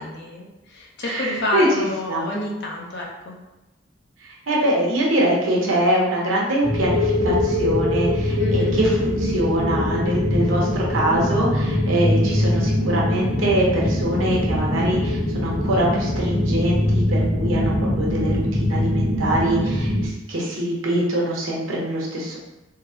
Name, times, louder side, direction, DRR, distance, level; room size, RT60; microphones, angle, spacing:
voice 1, 0.0-3.4 8.4-8.8, left 1 dB, 60° left, -2 dB, 0.7 m, -29 dB
voice 2, 1.0-2.2 4.2-22.4, right 1 dB, 85° right, -3 dB, 0.8 m, -23 dB
sound 1, 6.6-20.1, left 1 dB, 65° right, 1.0 m, -22 dB
3.7 x 2.1 x 2.7 m, 0.99 s
head